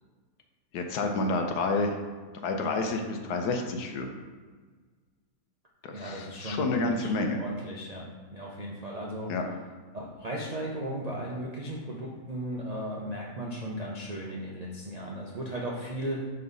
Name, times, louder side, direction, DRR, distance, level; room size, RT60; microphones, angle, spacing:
voice 1, 0.7-2.0 2.4-4.1 5.8-7.4 9.3-9.5, left 3 dB, 75° left, 4 dB, 1.2 m, -29 dB
voice 2, 5.9-9.3 9.9-16.3, right 1 dB, 50° right, -3 dB, 0.4 m, -36 dB
5.4 x 5.4 x 4.0 m, 1.4 s
omnidirectional pair, 1.8 m